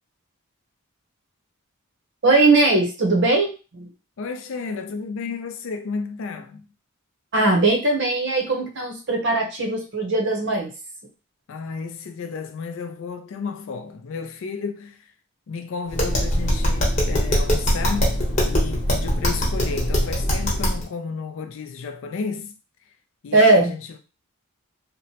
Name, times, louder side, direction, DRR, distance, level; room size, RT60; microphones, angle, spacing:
voice 1, 2.2-3.9 7.3-10.7 23.3-23.7, right 2 dB, 55° right, 0.8 m, -19 dB
voice 2, 4.2-6.7 11.5-15.1 15.5-22.5 23.2-24.0, left 5 dB, 60° left, 0.4 m, -32 dB
Tap, 15.9-20.8, equal, 30° left, 0.9 m, -22 dB
2.9 x 2.1 x 2.8 m
head